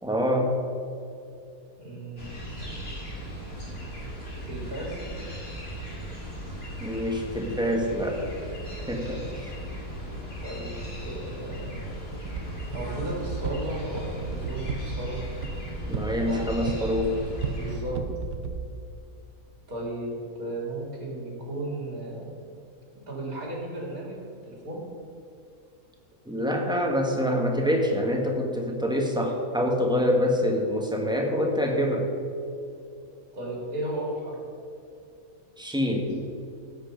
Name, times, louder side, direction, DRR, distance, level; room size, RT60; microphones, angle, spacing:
voice 1, 0.0-0.5 6.8-8.2 8.9-9.5 15.9-17.2 26.2-32.1 35.6-36.2, equal, 5° right, 0 dB, 1.6 m, -26 dB
voice 2, 1.8-2.4 4.5-5.0 10.4-11.8 12.7-15.2 16.2-16.5 17.5-18.0 19.7-22.3 23.1-24.2 24.4-24.8 33.3-34.4 36.1-36.2, right 1 dB, 80° right, -4 dB, 3.6 m, -35 dB
sound 1, 2.2-17.8, equal, 40° left, 3.3 m, -37 dB
sound 2, 12.2-18.7, right 4 dB, 60° right, 1.1 m, -34 dB
16.5 x 8.4 x 5.2 m, 2.6 s
omnidirectional pair, 1.5 m